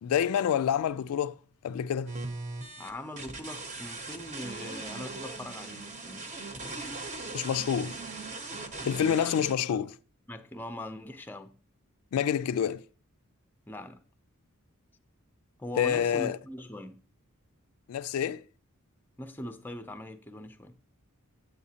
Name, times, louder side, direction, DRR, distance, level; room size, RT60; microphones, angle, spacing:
voice 1, 0.0-1.3 1.6-2.1 7.3-8.0 8.8-9.9 12.1-12.8 15.8-16.4 17.9-18.4, left 8 dB, 75° left, 0.3 m, -27 dB
sound 1, 2.1-9.5, right 3 dB, 35° right, 0.9 m, -39 dB
voice 2, 2.8-6.8 8.8-9.3 9.7-9.9 10.3-11.5 13.7-14.0 15.6-17.0 19.2-20.7, left 1 dB, 10° left, 0.5 m, -41 dB
8.4 x 8.0 x 2.8 m
head